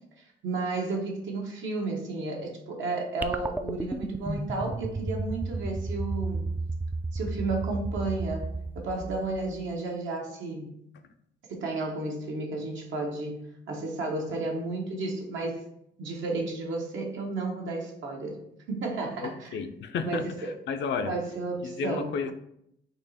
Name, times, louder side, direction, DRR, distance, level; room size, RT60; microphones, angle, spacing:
voice 1, 0.4-6.5 7.1-10.7 11.5-13.4 13.7-15.6 16.0-18.4 18.7-19.5 20.0-20.2 21.1-22.1, right 3 dB, 75° right, 0 dB, 1.2 m, -32 dB
sound 1, 3.2-9.7, right 2 dB, 10° right, 0.3 m, -33 dB
voice 2, 19.2-21.1 21.6-22.3, left 5 dB, 65° left, 8 dB, 0.5 m, -32 dB
4.3 x 2.9 x 4.2 m, 0.76 s
cardioid pair, 90°, 20 cm